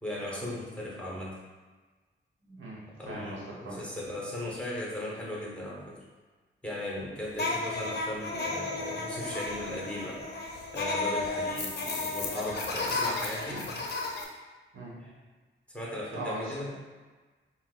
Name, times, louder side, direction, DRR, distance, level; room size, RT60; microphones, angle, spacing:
voice 1, 0.0-1.4 3.0-6.0 6.6-10.2 10.7-13.7 15.0-15.2 15.7-16.8, left 1 dB, 5° left, -5 dB, 1.1 m, -37 dB
voice 2, 2.5-3.8 13.5-13.8 14.7-15.0 16.1-16.8, right 1 dB, 70° right, -5 dB, 1.0 m, -40 dB
sound 1, 7.3-14.2, left 3 dB, 50° left, 0.6 m, -33 dB
5.6 x 2.1 x 2.5 m, 1.3 s
cardioid pair, 60°, 21 cm